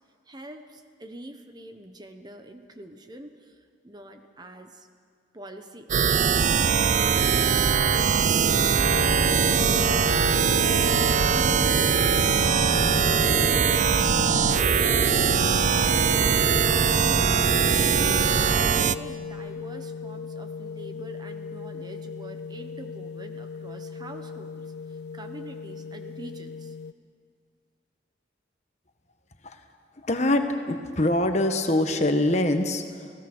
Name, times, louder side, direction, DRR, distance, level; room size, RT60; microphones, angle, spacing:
voice 1, 0.3-4.9 5.3-10.7 11.3-17.4 17.9-26.7, right 1 dB, 25° right, 6 dB, 1.1 m, -44 dB
sound 1, 5.9-18.9, right 6 dB, 45° right, 0.5 m, -21 dB
sound 2, 8.8-26.9, left 5 dB, 65° left, 0.5 m, -35 dB
voice 2, 30.0-33.1, left 1 dB, 40° left, 6 dB, 1.5 m, -24 dB
29.5 x 17.0 x 6.2 m, 2.2 s
head